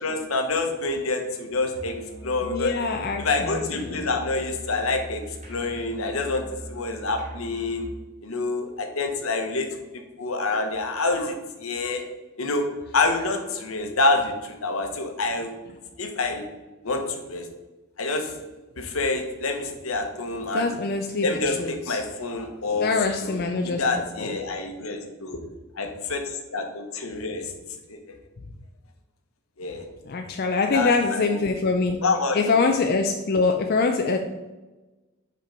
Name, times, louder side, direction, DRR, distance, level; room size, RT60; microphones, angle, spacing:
voice 1, 0.0-2.7 3.2-5.2 5.5-6.4 6.7-7.9 8.2-9.7 10.2-11.3 11.6-12.1 12.4-12.7 12.9-15.5 16.0-16.4 16.8-17.5 18.0-18.3 18.8-20.7 21.2-22.9 23.2-25.4 25.7-27.5 27.9-28.0 29.6-29.8 30.7-31.5 32.0-32.4, left 3 dB, 75° left, 4 dB, 1.1 m, -27 dB
Musical instrument, 1.6-8.0, right 1 dB, 30° right, 2.3 m, -41 dB
voice 2, 2.4-4.2 20.5-22.0 22.8-23.9 24.2-24.4 30.1-32.0 32.3-34.2, left 4 dB, 45° left, 4 dB, 0.4 m, -24 dB
5.8 x 4.5 x 5.1 m, 1.1 s
head